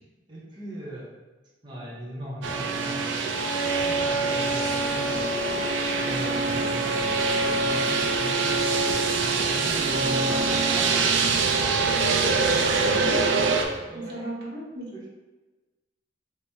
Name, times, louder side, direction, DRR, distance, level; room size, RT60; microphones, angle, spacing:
voice 1, 0.3-1.1 1.6-3.0 3.8-5.7 6.0-8.9 9.2-11.8 12.1-12.5 13.6-14.3 14.9-15.1, equal, 25° right, -7 dB, 0.7 m, -38 dB
Boat Lift, 2.4-13.6, right 4 dB, 85° right, 0.4 m, -24 dB
sound 1, 3.6-13.8, left 1 dB, 60° left, 0.6 m, -44 dB
voice 2, 12.8-13.4 13.9-14.9, right 1 dB, 60° right, -4 dB, 0.9 m, -36 dB
4.1 x 2.0 x 3.4 m, 1.2 s
head